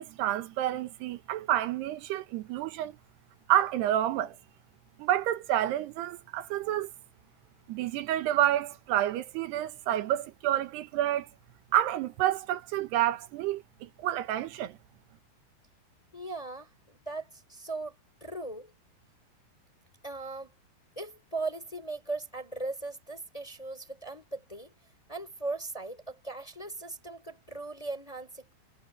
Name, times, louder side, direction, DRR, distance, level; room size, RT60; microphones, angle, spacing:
voice 1, 0.0-3.0 3.5-4.4 5.0-6.9 7.7-11.3 11.7-14.8, right 12 dB, 90° right, 3.2 m, -29 dB
voice 2, 16.1-18.0 18.2-18.7 20.0-20.5 21.0-24.7 25.1-28.5, right 3 dB, 10° left, 2.4 m, -38 dB
omnidirectional pair, 4.7 m